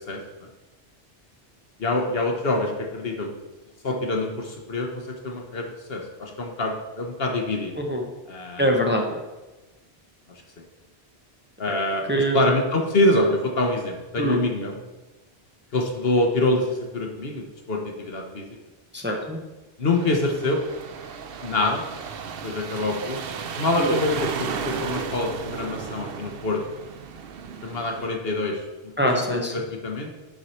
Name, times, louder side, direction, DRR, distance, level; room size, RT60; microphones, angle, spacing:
voice 1, 1.8-3.3 3.8-4.9 5.2-7.7 8.3-8.6 11.6-14.7 15.7-18.5 19.8-20.6 21.4-21.8 22.4-23.2 23.6-26.6 27.6-28.6 29.0-29.2 29.5-30.1, left 2 dB, 70° left, 2 dB, 1.4 m, -25 dB
voice 2, 8.6-9.2 11.7-11.8 12.1-12.4 14.2-14.4 18.9-19.4 23.8-23.9 29.0-29.5, equal, 10° right, 1 dB, 0.8 m, -23 dB
sound 1, 19.9-28.1, right 6 dB, 70° right, 0.8 m, -34 dB
10.5 x 4.8 x 4.4 m, 1.1 s
omnidirectional pair, 1.0 m